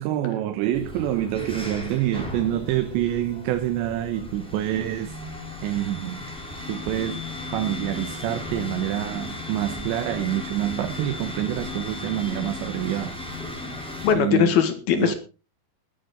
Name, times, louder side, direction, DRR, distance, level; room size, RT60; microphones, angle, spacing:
voice 1, 0.0-5.2 5.6-6.3 6.7-13.2 13.5-13.7 14.2-14.6 15.0-15.1, right 13 dB, 85° right, 3.3 m, -27 dB
sound 1, 0.7-14.1, left 2 dB, ahead, 2.8 m, -36 dB
voice 2, 14.0-15.1, left 8 dB, 65° left, 3.5 m, -20 dB
20.5 x 9.4 x 3.9 m
omnidirectional pair, 5.0 m